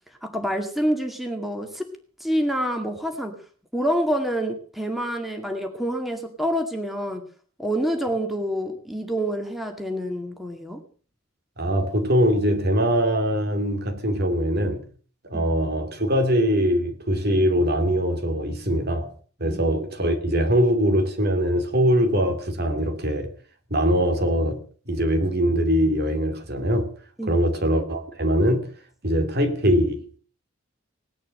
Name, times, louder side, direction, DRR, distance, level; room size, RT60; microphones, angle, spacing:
voice 1, 0.2-1.9 2.2-3.4 3.7-7.2 7.6-10.8 15.3-15.5 19.4-19.6 27.2-27.4, equal, ahead, 2.0 m, -27 dB
voice 2, 11.6-14.8 15.2-19.1 19.4-23.3 23.7-26.9 27.3-28.7 29.0-30.2, equal, 45° right, 2.5 m, -22 dB
18.5 x 11.0 x 6.5 m
head